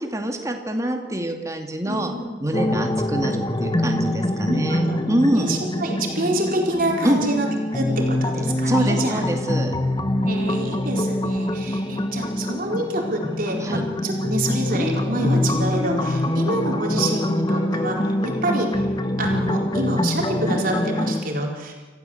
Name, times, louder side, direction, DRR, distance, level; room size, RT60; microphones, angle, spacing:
voice 1, 0.0-2.1 2.4-5.5 7.0-7.2 8.7-9.7 13.6-13.8, right 1 dB, 20° right, 3 dB, 2.5 m, -24 dB
voice 2, 1.8-2.3 4.7-5.0 5.3-7.5 7.7-9.2 10.2-18.0 18.2-18.7 19.2-21.7, right 1 dB, 55° right, 0 dB, 4.5 m, -27 dB
sound 1, 2.5-21.2, left 1 dB, 25° left, 1.3 m, -24 dB
27.0 x 15.0 x 8.0 m, 1.3 s
head